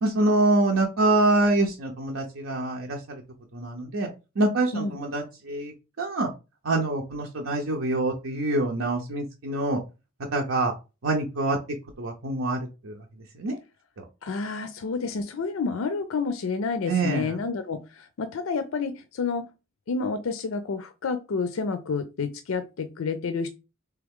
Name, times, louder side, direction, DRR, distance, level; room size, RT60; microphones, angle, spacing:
voice 1, 0.0-3.2 3.5-4.1 4.4-6.3 6.6-9.8 10.3-10.7 11.0-11.6 12.0-13.0 13.4-13.6 14.0-14.1 16.9-17.4, right 2 dB, 80° right, 1 dB, 0.7 m, -25 dB
voice 2, 14.2-19.5 19.9-23.5, left 4 dB, 90° left, 10 dB, 0.4 m, -29 dB
3.5 x 3.3 x 3.6 m, 0.29 s
head